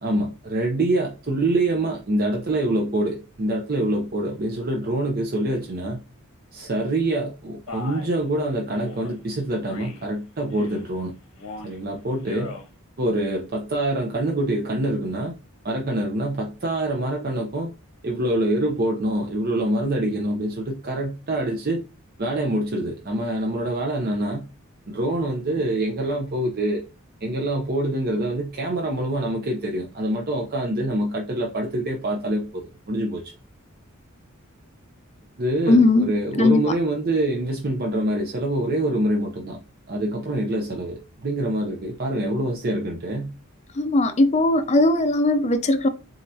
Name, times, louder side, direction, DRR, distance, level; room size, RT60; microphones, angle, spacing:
voice 1, 0.0-6.0 6.5-11.1 11.6-12.5 13.0-15.3 15.6-17.7 18.0-21.8 22.2-24.5 24.9-26.8 27.2-33.3 35.4-39.6 39.9-43.3, right 1 dB, 45° right, 0.7 m, -25 dB
Male speech man speaking, 7.7-8.1 8.7-9.1 9.7-10.1 10.5-10.9 11.3-11.8 12.2-12.7, left 2 dB, 90° left, 1.2 m, -38 dB
voice 2, 35.7-36.1 36.4-36.6 43.8-45.9, left 2 dB, 30° left, 0.5 m, -18 dB
4.2 x 3.8 x 2.7 m
head